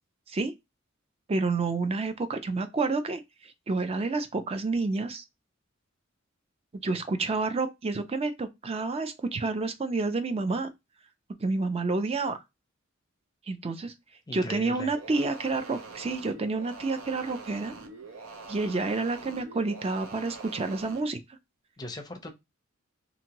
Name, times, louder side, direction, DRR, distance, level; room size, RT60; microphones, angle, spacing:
voice 1, 1.3-3.2 3.7-5.2 6.8-10.7 11.4-12.4 13.5-13.9 14.3-17.7 18.5-21.2, right 3 dB, 30° right, 0.4 m, -29 dB
voice 2, 14.3-14.9 21.8-22.3, left 1 dB, 20° left, 0.6 m, -38 dB
sound 1, 14.9-21.1, right 3 dB, 90° right, 0.6 m, -44 dB
2.8 x 2.6 x 2.8 m
head